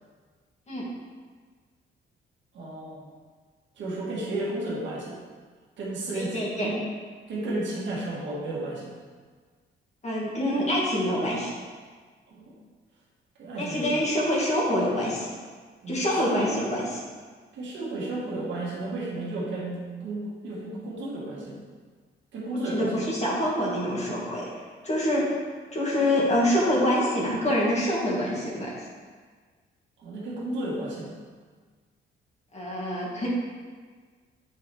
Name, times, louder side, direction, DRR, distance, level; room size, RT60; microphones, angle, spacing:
voice 1, 2.5-3.1 3.7-5.2 5.8-6.8 7.3-8.9 12.3-12.5 13.4-14.1 15.8-16.6 17.5-21.6 22.3-23.1 30.0-31.1, right 2 dB, 70° right, -5 dB, 1.7 m, -33 dB
voice 2, 6.1-6.7 10.0-11.5 13.6-15.3 15.9-17.0 22.5-24.5 24.8-25.2 25.7-28.8 32.5-33.3, left 1 dB, 35° left, -6 dB, 1.9 m, -26 dB
7.7 x 4.5 x 3.4 m, 1.5 s
cardioid pair, 90°, 20 cm